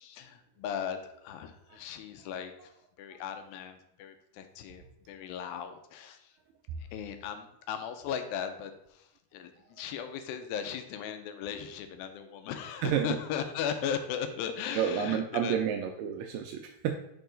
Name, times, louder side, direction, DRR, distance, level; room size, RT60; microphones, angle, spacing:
voice 1, 0.0-2.5 3.0-6.3 6.9-15.6, left 8 dB, 80° left, 7 dB, 2.3 m, -37 dB
voice 2, 14.7-16.9, right 9 dB, 80° right, 4 dB, 2.0 m, -30 dB
5.7 x 4.6 x 3.8 m, 0.79 s
omnidirectional pair, 4.3 m